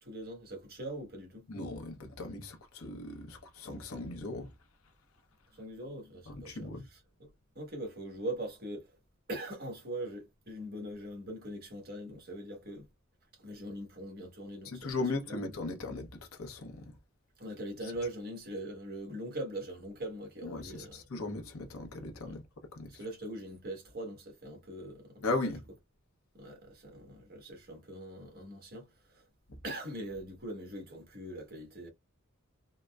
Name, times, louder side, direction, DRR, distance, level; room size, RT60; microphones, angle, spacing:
voice 1, 0.0-1.5 5.5-9.0 9.3-12.9 13.3-15.0 15.3-15.4 17.4-21.0 22.3-22.4 22.9-25.2 26.3-29.2 29.6-31.9, right 1 dB, 45° right, 1.2 m, -42 dB
voice 2, 1.5-4.5 6.3-6.9 14.6-17.0 20.4-22.4 22.7-23.0 25.2-25.6 29.5-29.6, left 2 dB, 80° left, 0.8 m, -38 dB
3.8 x 2.1 x 2.2 m
head